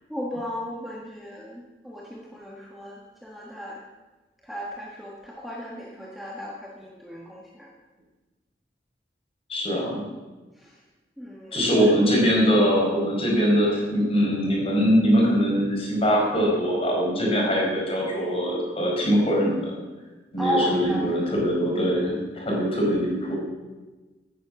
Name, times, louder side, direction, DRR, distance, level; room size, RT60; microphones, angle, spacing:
voice 1, 0.1-3.8 4.4-7.7 10.6-10.8 11.2-11.9 20.4-21.3, equal, ahead, -3 dB, 1.7 m, -34 dB
voice 2, 9.5-10.0 11.5-19.7 20.3-23.4, equal, 35° left, -2 dB, 5.0 m, -22 dB
16.0 x 9.9 x 6.3 m, 1.2 s
head